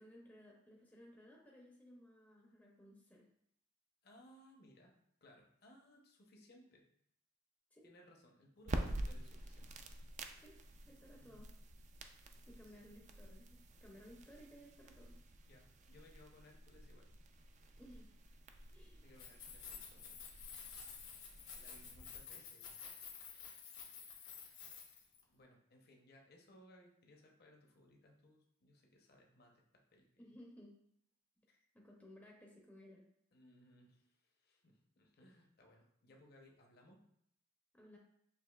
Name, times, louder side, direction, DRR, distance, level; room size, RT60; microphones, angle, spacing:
voice 1, 0.0-3.3 7.7-7.9 10.4-10.6 10.9-11.5 12.5-15.2 17.8-18.1 18.7-19.1 30.2-30.7 31.4-31.5 31.7-33.0 37.7-38.0, equal, 10° left, -3 dB, 0.6 m, -59 dB
voice 2, 4.0-6.9 7.8-9.7 11.1-11.4 12.6-12.8 15.5-17.1 18.7-20.3 21.2-22.8 25.3-30.3 31.5-31.7 33.3-37.0, left 1 dB, 55° left, 1 dB, 0.8 m, -64 dB
sound 1, 8.6-22.2, right 2 dB, 40° right, 0.3 m, -48 dB
Keys jangling, 19.1-25.2, left 6 dB, 80° left, 1.0 m, -52 dB
6.5 x 2.8 x 2.3 m, 0.72 s
head